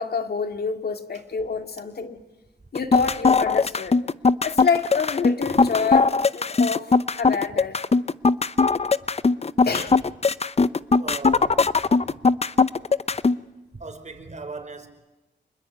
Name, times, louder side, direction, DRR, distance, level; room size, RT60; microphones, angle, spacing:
voice 1, 0.0-2.2 2.7-3.9 4.4-7.8 9.7-10.0, left 5 dB, 55° left, 6 dB, 2.3 m, -27 dB
sound 1, 2.7-13.3, left 4 dB, 35° left, 0.8 m, -19 dB
voice 2, 11.0-12.2 13.7-14.9, right 3 dB, 40° right, 7 dB, 4.9 m, -38 dB
28.0 x 21.0 x 8.9 m, 1.1 s
cardioid pair, 70°, 19 cm